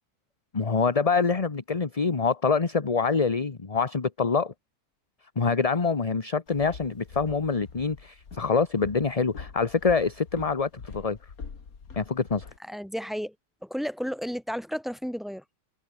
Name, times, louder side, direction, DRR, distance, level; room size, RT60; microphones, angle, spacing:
voice 1, 0.5-4.5 5.4-11.2 12.0-12.5, left 5 dB, 25° left, 1.1 m, -25 dB
Walk footsteps, 6.5-12.6, left 5 dB, 70° left, 2.6 m, -44 dB
voice 2, 12.7-13.3 13.6-15.4, equal, ahead, 5.1 m, -32 dB
omnidirectional pair, 1.6 m